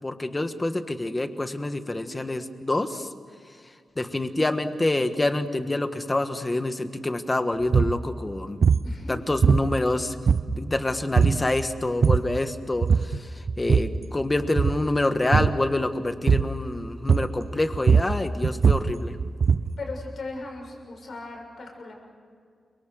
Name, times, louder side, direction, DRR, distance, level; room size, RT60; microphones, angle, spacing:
voice 1, 0.0-3.1 4.0-8.6 9.1-10.1 10.5-13.3 13.6-19.2, left 2 dB, 20° left, 8 dB, 1.5 m, -27 dB
sound 1, 7.6-8.0 8.6-8.9 9.4-9.9 10.3-10.7 11.2-11.5 11.8-12.4 12.8-13.2 13.5-14.0 14.5-14.9 15.3-15.6 16.3-16.6 17.1-17.5 17.7-19.8, right 5 dB, 50° right, 0.6 m, -21 dB
voice 2, 8.8-9.2 19.8-21.9, left 3 dB, 50° left, 1 dB, 6.8 m, -37 dB
29.5 x 24.5 x 6.5 m, 2.1 s
wide cardioid pair, 145°, 0 cm